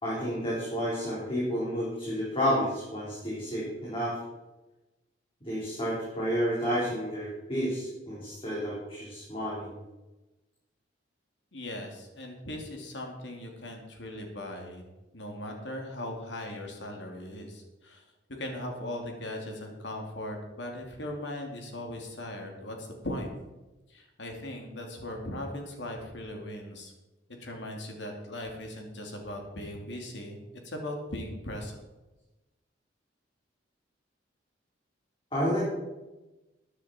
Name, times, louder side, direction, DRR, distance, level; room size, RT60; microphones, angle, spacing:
voice 1, 0.0-4.2 5.4-9.7 35.3-35.6, equal, 30° left, -7 dB, 4.0 m, -30 dB
voice 2, 11.5-14.8 15.1-18.0 18.4-23.3 23.9-26.9 27.4-31.8, left 1 dB, 75° left, 2 dB, 2.6 m, -39 dB
14.0 x 9.8 x 4.4 m, 1.1 s
head